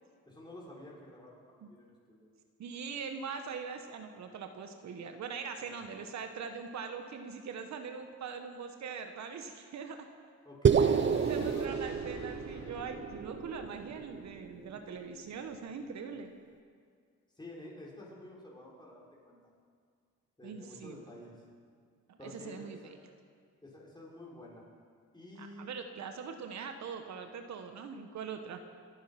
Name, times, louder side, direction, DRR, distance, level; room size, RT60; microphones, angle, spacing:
voice 1, 0.3-2.3 5.6-5.8 10.5-10.9 11.3-11.7 17.4-19.4 20.4-21.3 22.2-23.0 23.6-24.6 25.1-25.7, left 1 dB, 15° left, -4 dB, 5.4 m, -50 dB
voice 2, 2.6-10.1 10.7-16.3 20.4-21.0 22.1-23.0 25.4-28.6, right 6 dB, 65° right, 6 dB, 1.3 m, -42 dB
sound 1, 10.6-15.0, right 6 dB, 40° right, 0.8 m, -30 dB
Explosion, 10.8-15.1, left 2 dB, 70° left, 4.3 m, -49 dB
25.0 x 9.5 x 5.9 m, 2.1 s
cardioid pair, 90°, 30 cm